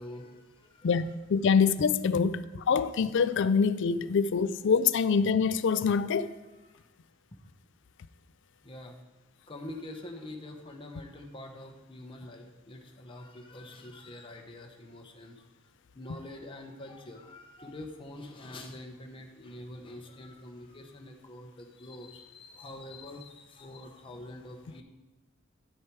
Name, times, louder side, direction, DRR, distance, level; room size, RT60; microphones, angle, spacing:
voice 1, 0.0-1.0 2.7-2.8 6.6-6.8 8.6-9.0 9.5-15.4 15.9-24.8, left 1 dB, 25° left, 0.9 m, -45 dB
voice 2, 0.8-6.3, left 5 dB, 60° left, 0.4 m, -25 dB
10.0 x 6.4 x 4.6 m
head